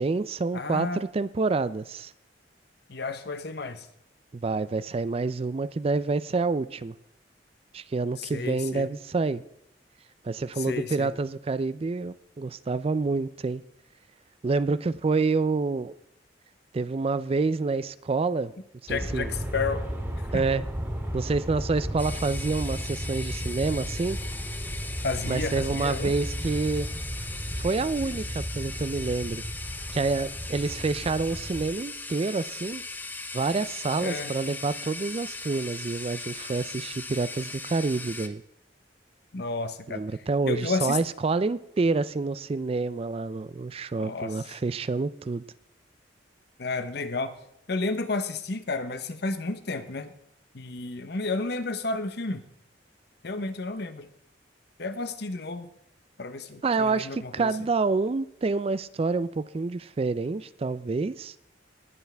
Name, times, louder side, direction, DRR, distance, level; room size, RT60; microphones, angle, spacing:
voice 1, 0.0-2.1 4.3-6.9 7.7-9.4 10.2-13.6 14.4-15.9 16.7-18.5 18.8-19.3 20.3-20.6 21.1-24.2 25.3-26.9 27.6-29.4 29.9-32.8 33.3-38.4 39.9-45.4 56.6-61.3, right 3 dB, 35° right, 0.4 m, -28 dB
voice 2, 0.5-1.0 2.9-3.9 8.2-8.9 10.6-11.1 18.9-19.8 20.3-20.4 25.0-26.1 34.0-34.3 39.3-40.0 40.5-41.0 44.0-44.4 46.6-47.3 47.7-50.1 50.5-52.4 53.2-54.1 54.8-55.7 56.2-57.5, left 3 dB, 65° left, 0.9 m, -31 dB
Aircraft, 18.9-31.7, equal, 15° right, 2.3 m, -34 dB
sound 1, 22.0-38.3, left 3 dB, 10° left, 0.7 m, -39 dB
19.5 x 7.2 x 3.4 m
head